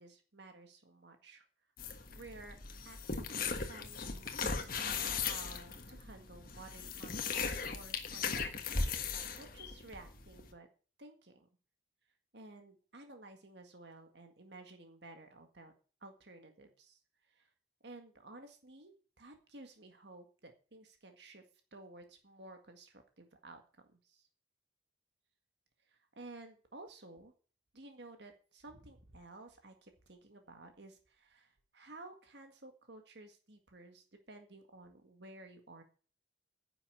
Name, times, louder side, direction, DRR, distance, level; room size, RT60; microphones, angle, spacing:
voice 1, 0.0-1.5 2.1-2.6 2.9-8.7 9.0-10.7 11.0-11.5 12.3-15.7 16.0-17.0 17.3-17.5 17.8-21.4 21.7-23.6 24.0-24.3 25.9-27.3 27.7-35.8, right 2 dB, 60° right, 5 dB, 1.8 m, -54 dB
sound 1, 1.8-10.5, left 5 dB, 45° left, 1.5 m, -38 dB
10.5 x 7.1 x 9.4 m, 0.39 s
head